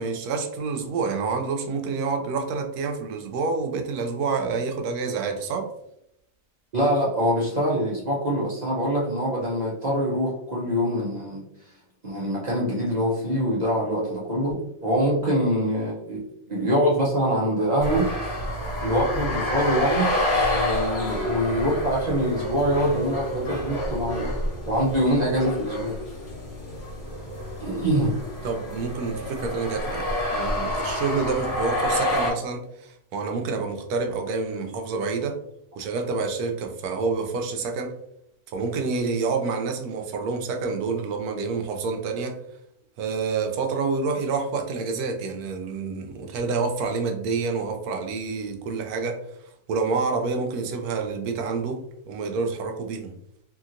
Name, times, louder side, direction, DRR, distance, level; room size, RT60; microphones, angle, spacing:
voice 1, 0.0-5.7 28.4-35.4 35.8-38.0 38.5-42.4 43.0-49.2 49.7-51.8 52.1-53.1, right 4 dB, 90° right, 4 dB, 1.1 m, -28 dB
voice 2, 6.7-11.7 12.0-16.2 16.5-18.1 18.8-24.3 24.7-26.0 27.6-28.1, equal, 55° right, -5 dB, 0.4 m, -24 dB
sound 1, 17.8-32.3, left 1 dB, 40° left, 0.9 m, -28 dB
2.8 x 2.8 x 2.4 m, 0.77 s
omnidirectional pair, 1.6 m